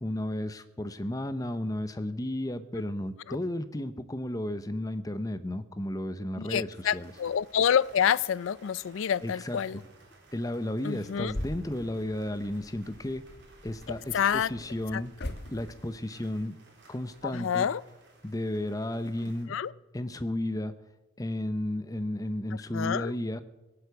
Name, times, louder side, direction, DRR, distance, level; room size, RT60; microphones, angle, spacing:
voice 1, 0.0-7.1 9.2-9.8 10.3-13.2 13.6-15.1 15.5-16.6 16.9-17.7 18.2-19.5 19.9-20.7 21.2-23.4, left 1 dB, 15° left, 12 dB, 0.7 m, -33 dB
voice 2, 6.4-9.8 10.8-11.3 14.1-14.5 14.9-15.3 17.2-17.8 19.5-19.7 22.7-23.1, left 8 dB, 75° left, 21 dB, 0.4 m, -28 dB
sound 1, 6.6-19.5, right 2 dB, 60° right, 3.6 m, -58 dB
sound 2, 11.2-16.1, left 1 dB, 55° left, 1.4 m, -42 dB
17.5 x 8.4 x 8.0 m, 1.1 s
head